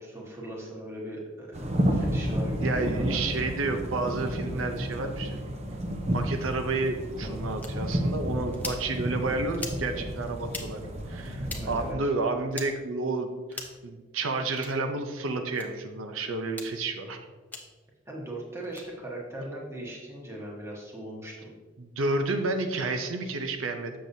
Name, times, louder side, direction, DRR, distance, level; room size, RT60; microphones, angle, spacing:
voice 1, 0.0-3.2 11.4-12.0 18.1-21.5, right 1 dB, 15° right, -3 dB, 1.1 m, -39 dB
sound 1, 1.5-11.9, equal, 30° right, 0.6 m, -31 dB
voice 2, 2.6-5.4 6.1-17.2 21.8-23.9, right 3 dB, 85° right, 6 dB, 0.6 m, -30 dB
sound 2, 7.6-7.7 8.5-8.8 9.5-9.8 10.5-10.7 11.4-11.6 12.5-12.7 13.5-13.8 14.5-14.7 15.5-15.7 16.5-16.7 17.5-17.6 18.6-18.8, left 2 dB, 10° left, 0.6 m, -38 dB
7.5 x 6.6 x 2.7 m, 1.4 s
head